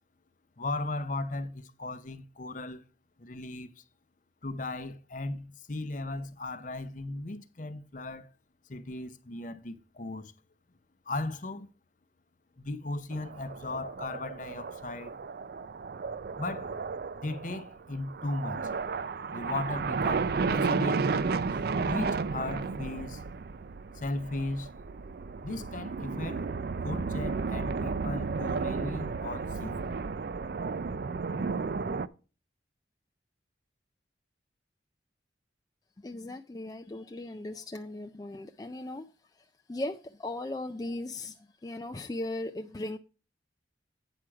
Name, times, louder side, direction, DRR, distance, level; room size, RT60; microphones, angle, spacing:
voice 1, 0.6-2.8 3.2-3.8 4.4-8.3 8.7-10.3 11.1-11.7 12.6-15.1 16.4-16.7 17.2-18.7 19.3-21.2 21.5-23.2 23.9-24.7 25.4-26.5 26.8-30.0, left 2 dB, 45° left, 0.7 m, -37 dB
sound 1, 13.1-32.1, right 4 dB, 55° right, 0.4 m, -33 dB
voice 2, 36.0-39.1 39.7-41.4 41.6-43.0, left 2 dB, 20° left, 0.3 m, -37 dB
9.0 x 6.2 x 4.6 m
head